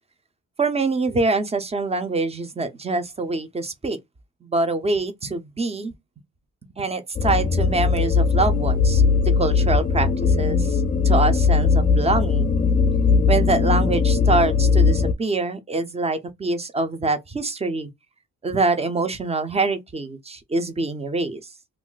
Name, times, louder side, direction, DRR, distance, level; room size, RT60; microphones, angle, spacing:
voice 1, 0.6-4.0 4.4-5.9 6.8-9.0 9.4-12.6 13.3-17.9 18.4-21.4, right 3 dB, 20° right, 0.5 m, -25 dB
sound 1, 7.2-15.1, left 5 dB, 30° left, 0.4 m, -19 dB
2.5 x 2.0 x 3.7 m
cardioid pair, 90°, 30 cm